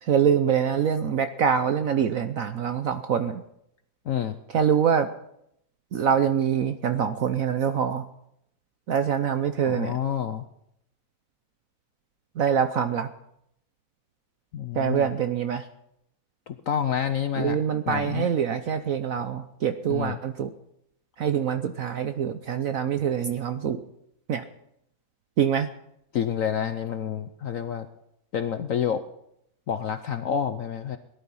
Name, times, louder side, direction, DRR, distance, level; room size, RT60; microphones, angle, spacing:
voice 1, 0.0-3.4 4.5-5.1 5.9-8.1 8.9-9.9 12.3-13.1 14.7-15.7 17.4-20.5 21.2-23.8 24.3-24.5 25.4-25.7, right 8 dB, 65° right, 9 dB, 0.9 m, -25 dB
voice 2, 4.1-4.4 9.6-10.4 14.5-15.0 16.5-17.6 17.9-18.3 19.9-20.2 26.1-27.9 28.3-29.0 29.7-31.0, left 8 dB, 65° left, 10 dB, 0.8 m, -28 dB
17.5 x 11.5 x 5.5 m, 0.76 s
omnidirectional pair, 2.1 m